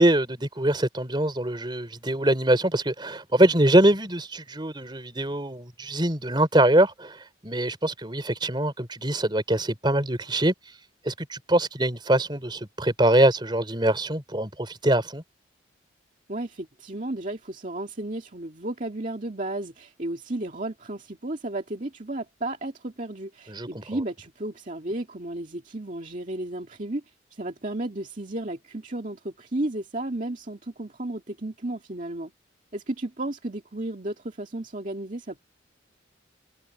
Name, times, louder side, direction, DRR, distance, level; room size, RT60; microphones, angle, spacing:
voice 1, 0.0-10.5 11.1-15.2 23.5-23.8, right 1 dB, 25° right, 4.0 m, -23 dB
voice 2, 16.3-27.0 27.3-32.3 32.7-35.4, right 1 dB, 45° right, 2.2 m, -33 dB
head